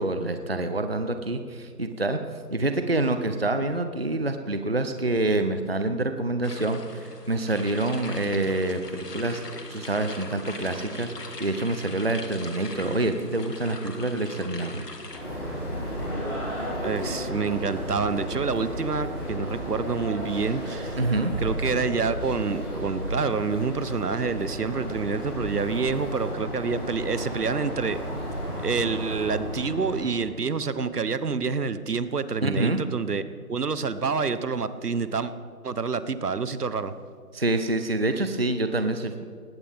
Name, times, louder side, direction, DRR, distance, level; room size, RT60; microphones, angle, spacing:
voice 1, 0.0-2.2 2.5-9.4 9.7-11.1 11.4-14.8 21.0-21.3 32.4-32.8 37.3-39.2, right 2 dB, 40° right, 8 dB, 0.7 m, -26 dB
Fountain Reflux & Dropping Water, 6.4-15.2, left 3 dB, 80° left, 2.6 m, -40 dB
sound 1, 15.1-30.1, equal, 15° left, 3.3 m, -33 dB
voice 2, 16.8-21.0 21.4-28.0 28.6-33.2 33.5-35.3 35.6-36.9, right 5 dB, 75° right, 13 dB, 1.1 m, -27 dB
19.0 x 17.0 x 3.6 m, 2.2 s
figure-of-eight pair, 175°, 47 cm